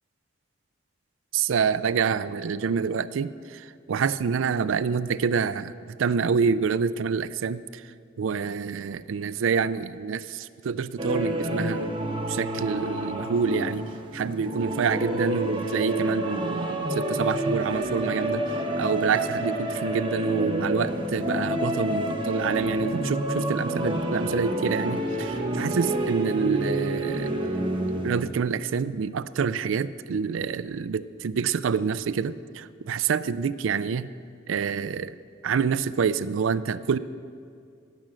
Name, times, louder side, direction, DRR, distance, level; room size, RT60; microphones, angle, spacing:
voice 1, 1.3-7.8 8.2-11.9 12.3-13.9 14.1-18.4 18.8-27.3 27.9-34.1 34.5-35.2 35.4-37.0, right 6 dB, 75° right, 16 dB, 0.4 m, -27 dB
sound 1, 11.0-28.3, right 1 dB, 25° right, 1.0 m, -29 dB
17.0 x 7.5 x 6.2 m, 2.3 s
head